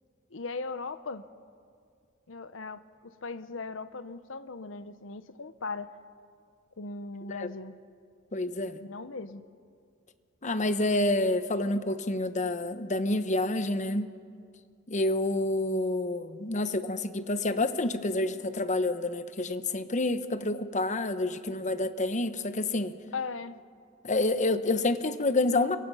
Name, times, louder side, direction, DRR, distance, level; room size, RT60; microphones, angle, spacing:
voice 1, 0.3-1.2 2.3-5.9 6.8-7.7 8.8-9.4 23.1-23.6, left 4 dB, 75° left, 12 dB, 0.9 m, -38 dB
voice 2, 8.3-8.8 10.4-14.1 14.9-22.9 24.0-25.8, left 2 dB, 40° left, 10 dB, 1.1 m, -28 dB
29.5 x 24.0 x 5.6 m, 2.2 s
head